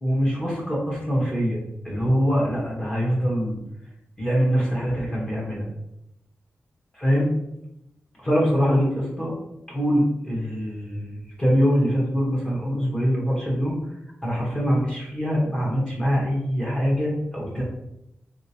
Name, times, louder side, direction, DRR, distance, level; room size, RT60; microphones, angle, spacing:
voice 1, 0.0-3.6 4.2-5.7 6.9-7.3 8.2-9.3 9.7-13.8 14.2-17.6, equal, 20° left, -4 dB, 1.0 m, -23 dB
3.3 x 2.8 x 2.8 m, 0.83 s
wide cardioid pair, 170°, 5 cm